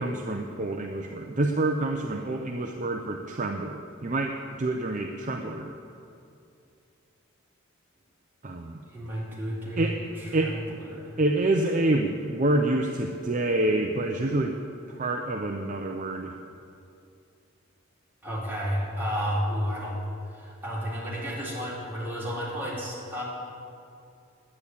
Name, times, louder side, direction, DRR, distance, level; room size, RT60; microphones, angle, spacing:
voice 1, 0.0-5.7 8.4-8.8 9.8-10.0 10.3-10.6 11.2-14.6 14.9-16.3, right 2 dB, 35° right, 3 dB, 0.6 m, -27 dB
voice 2, 8.9-11.2 18.2-20.0 20.3-23.2, equal, 10° right, -8 dB, 3.7 m, -32 dB
10.5 x 9.6 x 8.7 m, 2.5 s
head